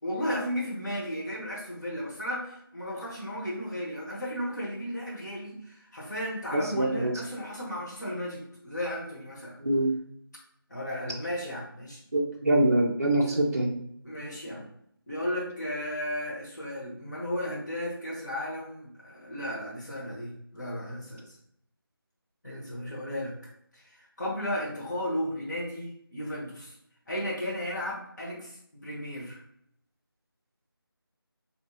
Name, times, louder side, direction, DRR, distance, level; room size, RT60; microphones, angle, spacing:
voice 1, 0.0-9.6 10.7-12.0 13.2-13.4 14.0-14.7 15.1-21.4 22.4-23.4 23.7-26.8 27.1-29.4, equal, 50° left, -5 dB, 1.2 m, -34 dB
voice 2, 6.5-7.1 9.6-9.9 12.1-13.7, right 1 dB, 40° right, -1 dB, 0.4 m, -24 dB
2.9 x 2.7 x 2.8 m, 0.70 s
figure-of-eight pair, 165°, 13 cm